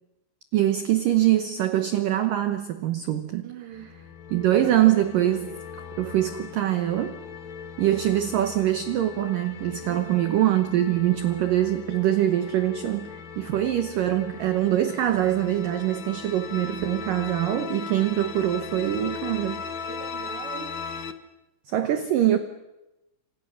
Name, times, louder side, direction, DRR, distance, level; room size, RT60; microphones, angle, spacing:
voice 1, 0.5-3.5 4.3-5.6 6.0-7.2 7.8-19.6 21.7-22.4, right 12 dB, 80° right, 9 dB, 1.9 m, -23 dB
voice 2, 3.4-3.9 9.8-10.4 19.8-20.8, right 9 dB, 55° right, 7 dB, 1.5 m, -42 dB
sound 1, 3.7-21.1, left 6 dB, 90° left, 1.5 m, -38 dB
29.0 x 26.5 x 6.4 m, 0.98 s
omnidirectional pair, 5.5 m